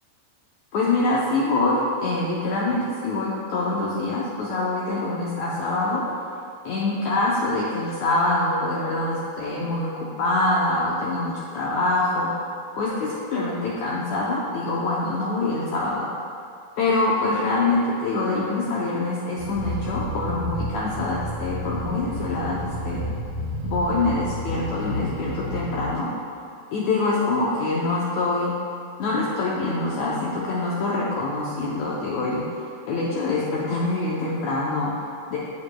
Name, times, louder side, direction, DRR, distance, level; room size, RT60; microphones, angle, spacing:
voice 1, 0.7-6.0 6.6-16.1 16.8-23.0 23.6-26.1 26.7-28.5 29.0-32.4 32.9-35.4, left 2 dB, 85° left, -5 dB, 1.5 m, -25 dB
sound 1, 19.4-25.8, equal, 55° right, 3.2 m, -31 dB
9.7 x 8.3 x 2.3 m, 2.5 s
omnidirectional pair, 4.2 m